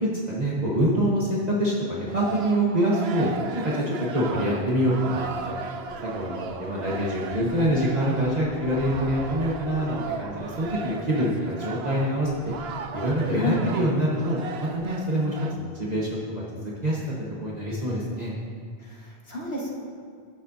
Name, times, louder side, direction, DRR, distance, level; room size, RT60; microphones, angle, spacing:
voice 1, 0.0-3.3 3.5-5.6 6.0-12.5 12.9-17.0 17.4-18.3, right 1 dB, 40° right, -5 dB, 1.4 m, -25 dB
sound 1, 2.1-15.6, right 5 dB, 80° right, 0.9 m, -36 dB
voice 2, 13.3-13.7 18.8-19.7, left 3 dB, 80° left, -3 dB, 1.9 m, -30 dB
20.0 x 7.4 x 2.8 m, 2.2 s
omnidirectional pair, 1.0 m